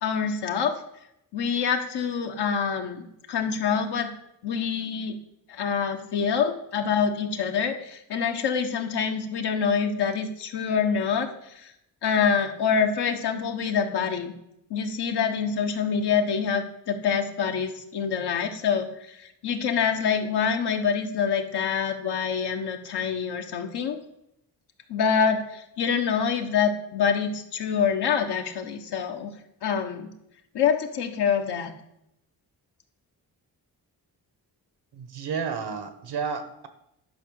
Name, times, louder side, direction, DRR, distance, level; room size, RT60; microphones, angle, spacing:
voice 1, 0.0-0.7 1.3-4.1 4.4-5.1 5.5-11.7 12.0-14.3 14.7-24.0 24.9-29.3 29.6-30.1 30.5-31.7, left 6 dB, 70° left, 4 dB, 1.4 m, -26 dB
voice 2, 34.9-36.7, right 5 dB, 70° right, 9 dB, 1.4 m, -31 dB
10.5 x 5.1 x 6.5 m, 0.80 s
cardioid pair, 70°, 41 cm